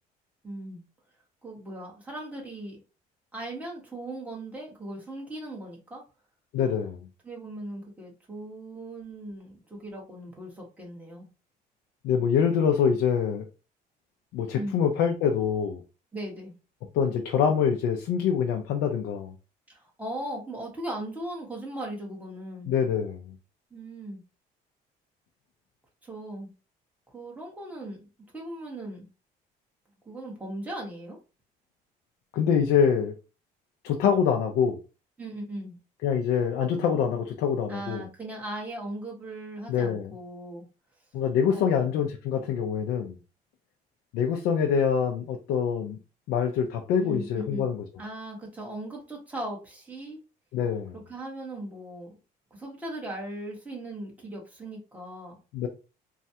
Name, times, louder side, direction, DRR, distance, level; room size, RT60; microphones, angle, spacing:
voice 1, 0.4-0.8 1.4-2.8 3.3-6.0 7.2-11.3 14.5-14.8 16.1-16.5 19.7-22.7 23.7-24.2 26.0-26.5 27.1-29.1 30.0-31.2 35.2-35.8 37.7-40.6 41.5-42.1 47.0-47.7 48.0-50.2 50.9-52.2 52.5-55.4, right 1 dB, 10° right, 1.4 m, -38 dB
voice 2, 6.5-7.1 12.0-13.5 14.3-15.8 16.9-19.3 22.7-23.3 32.3-33.1 33.8-34.8 36.0-38.1 39.7-40.1 41.1-43.2 44.1-46.0 46.3-47.8 50.5-50.9 55.5-55.7, left 7 dB, 85° left, 0.5 m, -25 dB
3.2 x 2.3 x 2.8 m
cardioid pair, 110°, 17 cm